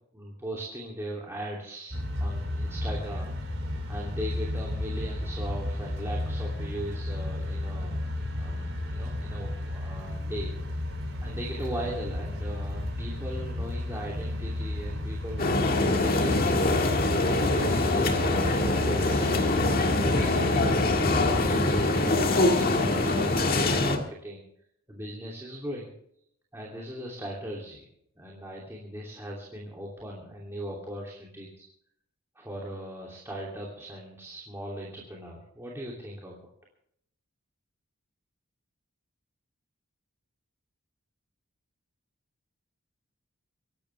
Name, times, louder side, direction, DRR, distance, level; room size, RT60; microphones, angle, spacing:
voice 1, 0.1-3.3 3.9-8.0 8.4-10.5 11.2-16.8 17.3-24.4 24.9-25.9 26.5-27.9 28.2-31.6 32.3-36.4, equal, 10° right, -3 dB, 2.8 m, -39 dB
sound 1, 1.9-21.5, left 1 dB, 60° right, 5.5 m, -33 dB
sound 2, 15.4-24.0, left 2 dB, 40° left, 1.8 m, -24 dB
24.5 x 12.0 x 3.4 m, 0.70 s
head